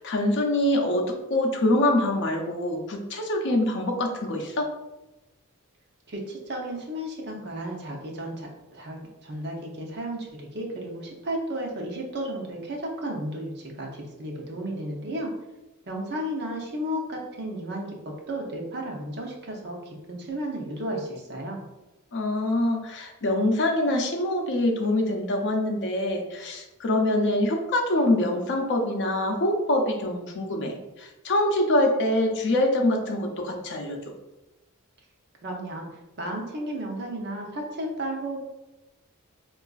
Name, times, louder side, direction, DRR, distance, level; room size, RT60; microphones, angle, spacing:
voice 1, 0.0-4.7 22.1-34.0, left 1 dB, 55° left, 3 dB, 0.5 m, -25 dB
voice 2, 6.1-15.3 15.9-21.6 35.4-38.4, right 1 dB, 50° right, 0 dB, 0.7 m, -33 dB
4.6 x 2.4 x 2.3 m, 1.0 s
head